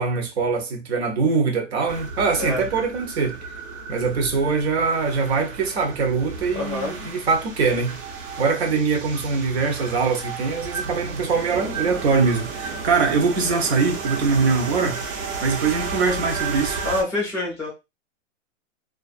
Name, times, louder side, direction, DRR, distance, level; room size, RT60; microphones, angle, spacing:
voice 1, 0.0-3.4 3.9-8.0 8.4-15.0 15.4-16.8, right 4 dB, 55° right, 0.8 m, -22 dB
sound 1, 1.9-17.0, right 4 dB, 90° right, 1.0 m, -33 dB
voice 2, 6.5-7.0 16.8-17.7, left 2 dB, 5° right, 0.4 m, -26 dB
2.4 x 2.3 x 2.4 m
hypercardioid pair, 175°, 39 cm